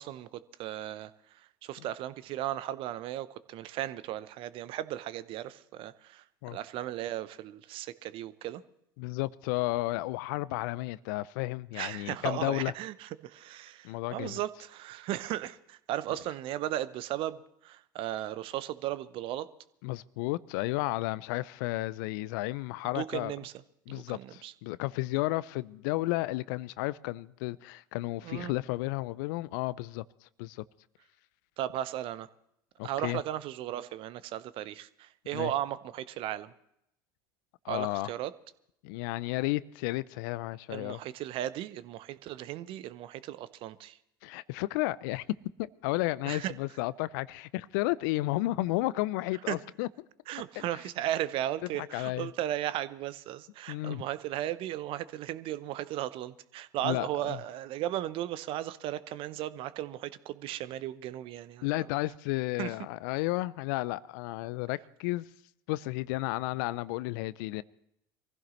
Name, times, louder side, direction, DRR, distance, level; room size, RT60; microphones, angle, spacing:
voice 1, 0.0-8.6 11.7-19.5 22.9-23.5 23.9-24.5 28.2-28.5 31.6-32.3 32.8-36.5 37.7-38.3 40.7-44.0 46.3-46.5 49.5-49.6 50.3-61.7 62.6-62.7, right 13 dB, 55° right, 0.7 m, -36 dB
voice 2, 9.0-12.7 13.8-14.4 19.8-23.3 23.9-30.0 30.4-30.6 32.8-33.2 35.3-35.5 37.6-38.1 38.8-41.0 44.2-45.2 45.6-49.9 50.6-50.7 51.7-52.3 53.7-54.0 56.8-57.4 61.6-65.3 65.7-67.6, left 19 dB, 65° left, 0.4 m, -32 dB
23.5 x 15.5 x 3.1 m
hypercardioid pair, 75°, 11 cm